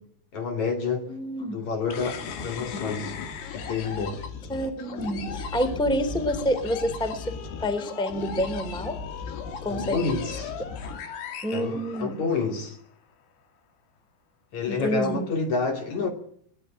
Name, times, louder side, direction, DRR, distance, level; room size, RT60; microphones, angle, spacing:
voice 1, 0.3-1.2 1.5-3.2 3.5-4.3 9.7-10.5 11.5-12.8 14.5-16.1, left 4 dB, 50° left, 3.7 m, -29 dB
voice 2, 1.1-1.6 4.5-7.3 7.6-9.0 9.6-10.0 11.4-12.2 14.7-15.3, equal, ahead, 2.3 m, -28 dB
sound 1, 1.9-12.5, left 5 dB, 75° left, 4.5 m, -36 dB
23.0 x 19.5 x 8.8 m
omnidirectional pair, 4.8 m